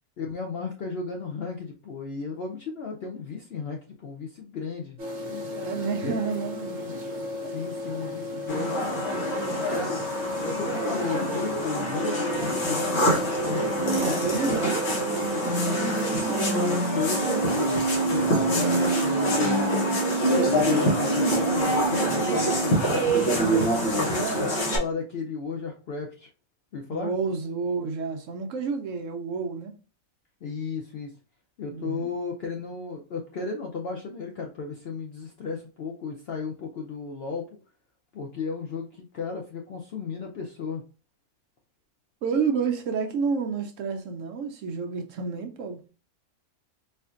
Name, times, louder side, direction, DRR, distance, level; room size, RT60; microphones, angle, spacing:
voice 1, 0.2-5.0 6.0-6.2 6.8-6.9 7.5-9.1 9.5-10.0 10.4-13.1 13.4-14.4 16.1-16.3 16.9-17.8 18.1-19.6 20.0-23.4 24.0-26.3 26.7-27.1 30.4-31.1 31.6-37.5 38.1-40.8, left 4 dB, 65° left, 0.6 m, -34 dB
sound 1, 5.0-11.6 11.9-16.3 16.6-22.8, right 2 dB, 40° right, 0.8 m, -31 dB
voice 2, 5.6-6.8 13.9-16.4 16.8-17.4 24.1-24.5 26.9-29.7 31.7-32.2 42.2-45.8, right 5 dB, 70° right, 0.8 m, -30 dB
sound 2, 8.5-24.8, equal, 50° left, 1.1 m, -26 dB
4.2 x 2.6 x 2.4 m
omnidirectional pair, 1.6 m